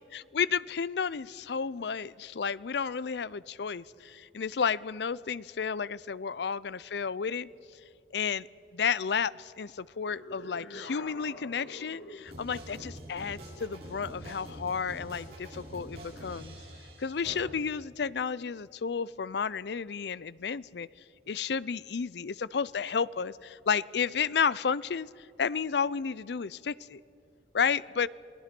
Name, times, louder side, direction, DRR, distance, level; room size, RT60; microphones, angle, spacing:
voice 1, 0.1-7.5 8.1-8.5 8.7-16.6 17.0-20.9 21.3-27.0 27.5-28.1, left 6 dB, 65° left, 20 dB, 0.5 m, -32 dB
sound 1, 10.1-12.4, left 2 dB, 80° left, 1.7 m, -45 dB
sound 2, 12.2-17.4, right 1 dB, 60° right, 7.3 m, -45 dB
28.0 x 18.5 x 6.0 m, 2.7 s
head